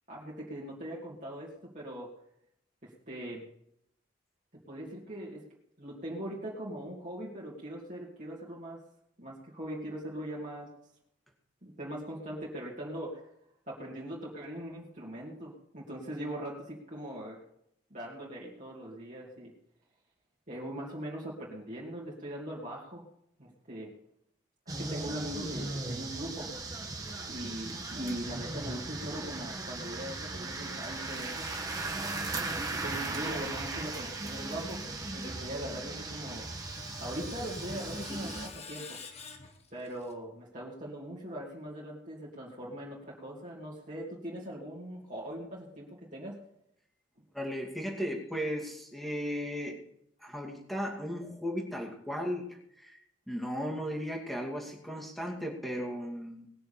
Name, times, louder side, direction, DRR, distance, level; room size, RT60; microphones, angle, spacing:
voice 1, 0.1-2.1 2.8-3.4 4.5-5.4 5.8-8.8 9.2-10.7 11.6-13.2 13.7-17.4 17.9-19.5 20.5-23.0 23.4-23.9 24.7-26.5 27.3-31.5 32.3-34.8 35.1-39.0 39.7-46.4, right 1 dB, 40° right, -5 dB, 2.8 m, -41 dB
sound 1, 24.7-38.5, right 2 dB, 20° right, 1.6 m, -37 dB
Screech, 35.8-40.1, left 4 dB, 35° left, 1.5 m, -49 dB
voice 2, 47.3-49.8 50.2-53.0 53.3-56.5, equal, ahead, -1 dB, 2.5 m, -36 dB
20.0 x 6.8 x 7.0 m, 0.75 s
head